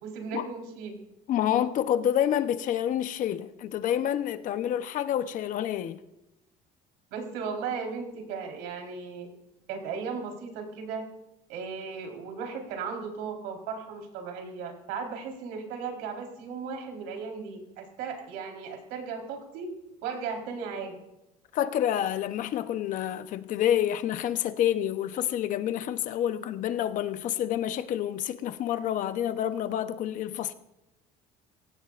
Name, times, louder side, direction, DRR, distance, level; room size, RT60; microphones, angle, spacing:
voice 1, 0.0-1.0 7.1-9.3 9.7-11.1 11.5-19.7 20.0-20.9, right 5 dB, 85° right, 4.3 m, -36 dB
voice 2, 1.3-6.0 21.5-30.5, left 10 dB, 55° left, 0.9 m, -28 dB
23.5 x 17.0 x 2.6 m
cardioid pair, 135°, 16 cm